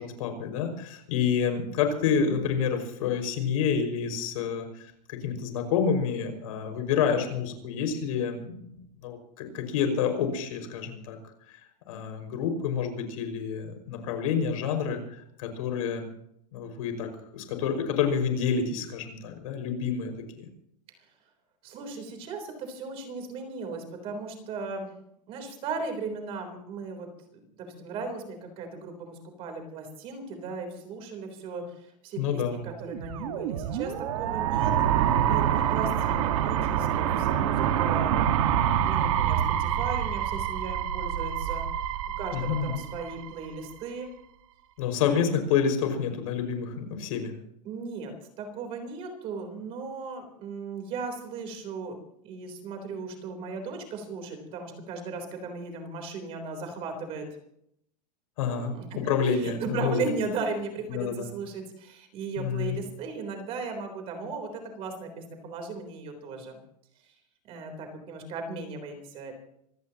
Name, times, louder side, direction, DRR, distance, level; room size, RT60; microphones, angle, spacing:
voice 1, 0.0-11.2 11.9-16.0 16.5-17.1 17.3-20.5 32.2-32.6 42.3-42.8 44.8-47.3 58.4-60.0 60.9-61.3 62.4-62.8, left 7 dB, 55° left, 5 dB, 5.7 m, -28 dB
voice 2, 21.6-24.9 25.3-34.7 35.0-44.1 47.6-52.0 52.2-57.3 58.4-66.6 67.5-69.3, right 4 dB, 25° right, 5 dB, 3.7 m, -37 dB
sound 1, 32.8-43.7, right 9 dB, 50° right, 1.7 m, -26 dB
26.0 x 18.0 x 3.0 m, 0.72 s
supercardioid pair, 170°, 21 cm